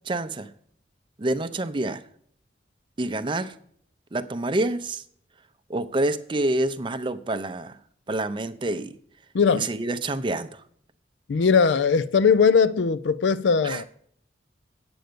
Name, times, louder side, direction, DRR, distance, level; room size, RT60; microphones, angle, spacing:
voice 1, 0.1-0.5 1.2-2.0 3.0-3.5 4.1-5.0 5.7-7.8 8.1-8.9 9.5-10.6 13.6-13.8, right 2 dB, 25° right, 0.5 m, -27 dB
voice 2, 9.3-9.7 11.3-13.8, left 5 dB, 85° left, 0.4 m, -20 dB
9.1 x 7.8 x 5.1 m
head